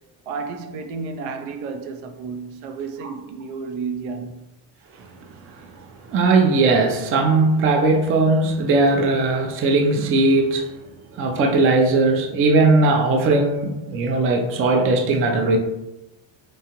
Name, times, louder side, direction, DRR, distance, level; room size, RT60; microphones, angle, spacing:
voice 1, 0.3-4.5, right 5 dB, 80° right, 0.6 m, -32 dB
voice 2, 5.0-10.7 11.1-15.6, right 3 dB, 30° right, 0.3 m, -19 dB
2.9 x 2.3 x 2.8 m
cardioid pair, 110°, 49 cm